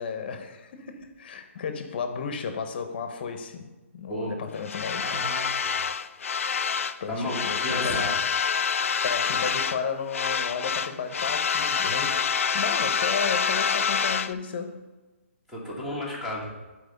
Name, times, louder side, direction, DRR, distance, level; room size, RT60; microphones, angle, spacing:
voice 1, 0.0-5.2 7.0-8.1 9.0-12.2 12.5-14.8, left 6 dB, 45° left, 0.9 m, -33 dB
sound 1, 4.7-7.0 7.3-9.8 10.1-14.3, left 6 dB, 75° left, 0.4 m, -27 dB
voice 2, 5.0-5.8 7.1-8.2 15.5-16.5, left 1 dB, 5° right, 1.5 m, -33 dB
9.1 x 4.4 x 5.2 m
hypercardioid pair, 165°, 7 cm